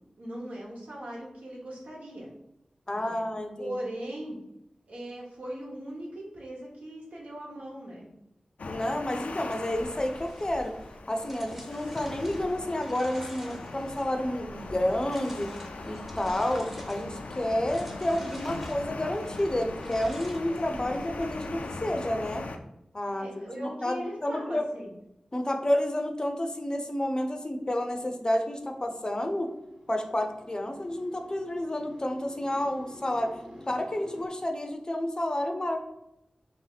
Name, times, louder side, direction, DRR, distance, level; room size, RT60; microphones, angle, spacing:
voice 1, 0.2-2.3 2.9-3.2 3.6-4.4 4.9-8.1 23.1-24.9, right 1 dB, 80° right, -3 dB, 1.2 m, -39 dB
voice 2, 2.9-3.7 8.7-10.8 11.1-15.5 15.8-22.5 22.9-24.7 25.3-29.5 29.9-33.3 33.7-35.8, left 1 dB, 30° left, 5 dB, 0.5 m, -30 dB
sound 1, 8.6-22.6, left 3 dB, 85° left, 0.4 m, -40 dB
sound 2, 9.7-21.9, equal, 10° right, 0.7 m, -47 dB
sound 3, 27.0-34.3, left 1 dB, 40° right, 1.2 m, -50 dB
3.4 x 2.7 x 4.0 m, 0.85 s
wide cardioid pair, 60°, 2 cm